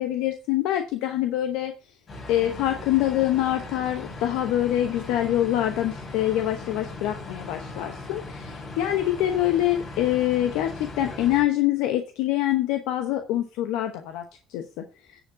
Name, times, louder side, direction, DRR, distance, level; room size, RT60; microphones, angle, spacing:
voice 1, 0.0-1.7 2.3-14.2 14.5-14.6, left 13 dB, 85° left, 6 dB, 0.9 m, -25 dB
sound 1, 2.1-11.4, left 2 dB, 45° left, 3.4 m, -39 dB
10.0 x 5.0 x 5.7 m, 0.35 s
supercardioid pair, 85°, 0 cm